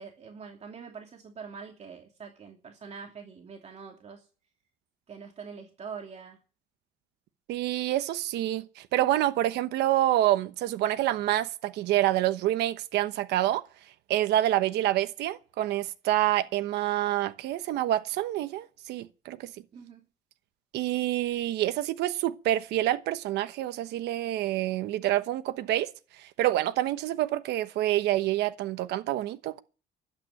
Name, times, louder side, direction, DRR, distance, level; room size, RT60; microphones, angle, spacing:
voice 1, 0.0-4.3 5.1-6.4 19.7-20.0, right 6 dB, 40° right, 2.8 m, -44 dB
voice 2, 7.5-13.6 14.1-19.5 20.7-25.9 26.2-29.6, right 14 dB, 80° right, 1.1 m, -27 dB
12.0 x 8.7 x 9.9 m
cardioid pair, 110°, 17 cm